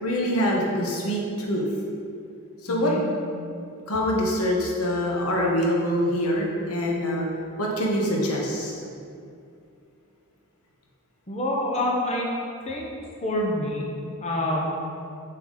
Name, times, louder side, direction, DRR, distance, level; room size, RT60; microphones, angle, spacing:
voice 1, 0.0-1.2 1.5-1.6 2.6-2.9 3.9-7.2 7.6-8.7, equal, 85° left, -2 dB, 1.1 m, -24 dB
voice 2, 2.7-3.0 11.3-12.3 12.7-12.9 13.2-13.8 14.2-14.7, left 1 dB, 30° left, -3 dB, 0.9 m, -26 dB
7.4 x 4.6 x 3.8 m, 2.4 s
head